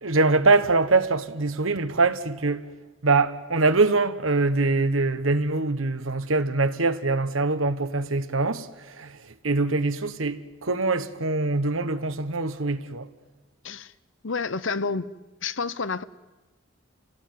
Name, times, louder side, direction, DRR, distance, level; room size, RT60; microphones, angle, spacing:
voice 1, 0.0-2.7 3.0-13.1, right 3 dB, 85° right, 1.4 m, -23 dB
voice 2, 14.2-15.1 15.4-16.0, left 4 dB, 75° left, 0.9 m, -29 dB
28.5 x 17.5 x 9.4 m
head